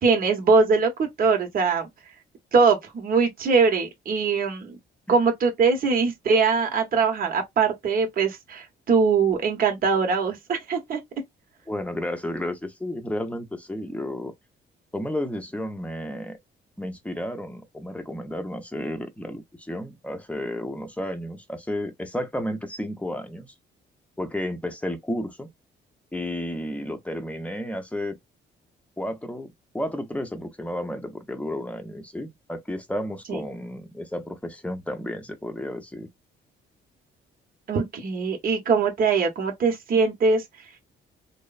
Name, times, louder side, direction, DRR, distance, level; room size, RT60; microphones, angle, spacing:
voice 1, 0.0-1.9 2.5-4.8 5.1-11.0 33.3-33.4 37.7-40.4, right 5 dB, 45° right, 0.9 m, -22 dB
voice 2, 11.7-14.3 14.9-16.4 16.8-23.5 24.2-25.5 26.1-28.2 29.0-36.1, left 1 dB, 5° left, 0.7 m, -32 dB
3.0 x 2.0 x 2.3 m
cardioid pair, 90°, 20 cm